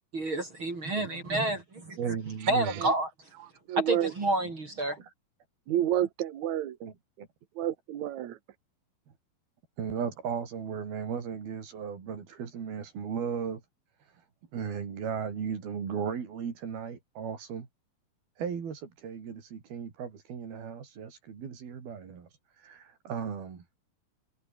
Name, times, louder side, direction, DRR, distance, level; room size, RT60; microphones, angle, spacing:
voice 1, 0.1-1.6 1.9-2.0 2.5-3.1 3.8-5.0, right 2 dB, 35° right, 4.7 m, -29 dB
voice 2, 2.0-2.8 5.0-5.1 6.8-7.3 9.8-13.6 14.0-14.2 14.5-17.7 18.4-23.7, right 7 dB, 80° right, 5.7 m, -36 dB
voice 3, 3.7-4.1 5.7-6.8 7.6-8.4, right 12 dB, 55° right, 2.7 m, -29 dB
omnidirectional pair, 4.3 m